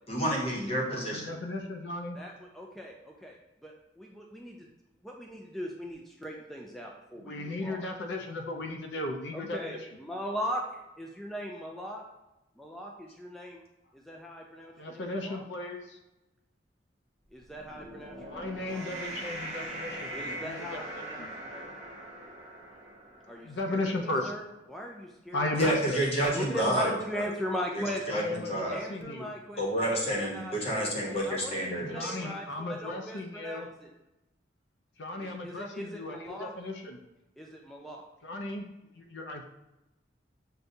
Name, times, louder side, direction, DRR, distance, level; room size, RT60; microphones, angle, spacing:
voice 1, 0.1-1.2 25.6-27.2 27.8-28.8 29.6-32.2, equal, 35° left, -2 dB, 0.9 m, -29 dB
voice 2, 0.8-2.2 7.2-9.8 14.8-16.0 18.3-21.3 23.3-24.3 25.3-26.9 28.1-29.3 31.7-33.7 35.0-37.0 38.2-38.7 38.9-39.4, left 2 dB, 75° left, 3 dB, 0.5 m, -36 dB
voice 3, 2.1-4.7 5.0-7.9 9.3-12.0 12.6-13.6 13.9-15.5 17.3-18.9 20.1-21.8 23.3-25.4 26.3-28.2 28.7-29.6 30.0-33.9 35.2-36.5 37.4-38.1, equal, ahead, -1 dB, 0.3 m, -39 dB
sound 1, 17.4-24.0, right 1 dB, 40° right, 0.9 m, -41 dB
6.4 x 2.3 x 2.6 m, 0.94 s
head